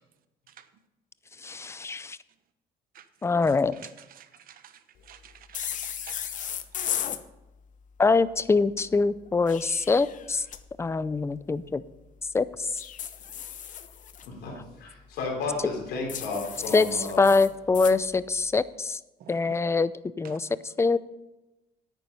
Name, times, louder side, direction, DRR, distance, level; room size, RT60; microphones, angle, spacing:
voice 1, 1.4-2.2 3.2-3.7 8.0-10.4 10.8-11.8 12.3-12.7 16.7-19.0 19.3-19.9 20.2-21.0, left 4 dB, 15° left, 17 dB, 0.4 m, -24 dB
voice 2, 4.1-4.8 5.1-5.7 6.0-6.2 19.2-19.5 20.2-20.4, right 9 dB, 60° right, 11 dB, 1.0 m, -49 dB
sound 1, 5.5-7.2 9.3-10.6 12.8-14.3 16.1-18.0, left 9 dB, 50° left, 0.8 m, -35 dB
voice 3, 14.2-17.3, left 3 dB, 75° left, -1 dB, 3.6 m, -33 dB
9.5 x 9.1 x 5.4 m, 0.99 s
cardioid pair, 110°, 17 cm